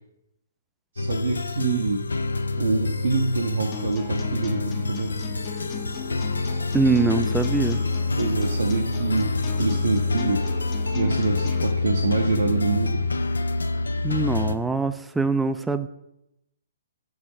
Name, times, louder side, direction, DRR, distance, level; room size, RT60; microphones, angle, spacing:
voice 1, 0.9-2.1 2.6-5.1 8.2-10.5 10.9-13.0, right 3 dB, 70° right, 2 dB, 0.7 m, -26 dB
sound 1, 1.0-14.6, left 3 dB, 80° left, 0.4 m, -27 dB
sound 2, 3.7-11.7, left 8 dB, 30° left, 0.7 m, -37 dB
voice 2, 6.7-7.8 14.0-15.9, right 4 dB, 5° right, 10 dB, 0.4 m, -23 dB
6.2 x 4.7 x 4.1 m, 0.82 s
figure-of-eight pair, 125°, 0 cm